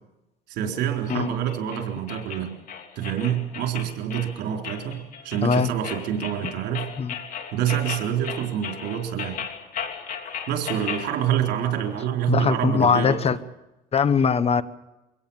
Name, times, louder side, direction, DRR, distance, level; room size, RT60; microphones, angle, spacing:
voice 1, 0.5-2.5 3.0-6.9 7.5-9.4 10.5-13.2, right 10 dB, 80° right, 4.0 m, -27 dB
sound 1, 1.1-11.1, left 7 dB, 55° left, 3.2 m, -36 dB
voice 2, 12.3-13.4 13.9-14.6, left 6 dB, 35° left, 1.1 m, -21 dB
24.0 x 17.5 x 7.2 m
cardioid pair, 110°, 17 cm